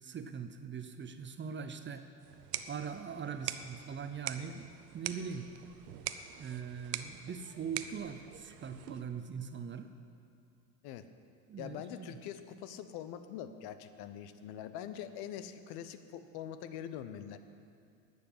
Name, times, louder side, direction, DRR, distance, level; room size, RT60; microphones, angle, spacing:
voice 1, 0.0-2.1 2.7-5.5 6.4-9.9 11.5-12.1, right 6 dB, 25° right, 9 dB, 0.8 m, -41 dB
sound 1, 2.2-9.2, right 11 dB, 80° right, 0.8 m, -44 dB
voice 2, 11.6-17.4, left 10 dB, 55° left, 11 dB, 1.0 m, -44 dB
11.5 x 8.3 x 8.7 m, 2.4 s
hypercardioid pair, 80°, 46 cm